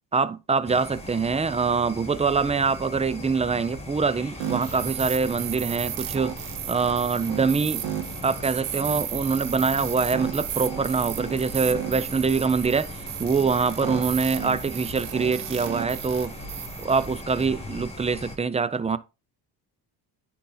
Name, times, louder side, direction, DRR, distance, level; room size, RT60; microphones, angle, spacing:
voice 1, 0.1-6.4 6.7-7.8 8.2-16.3 16.8-19.0, right 5 dB, 15° right, 0.5 m, -24 dB
sound 1, 0.6-18.4, left 1 dB, 15° left, 2.7 m, -39 dB
sound 2, 4.4-17.4, right 12 dB, 65° right, 0.8 m, -34 dB
9.8 x 4.2 x 3.9 m
cardioid pair, 80°, 44 cm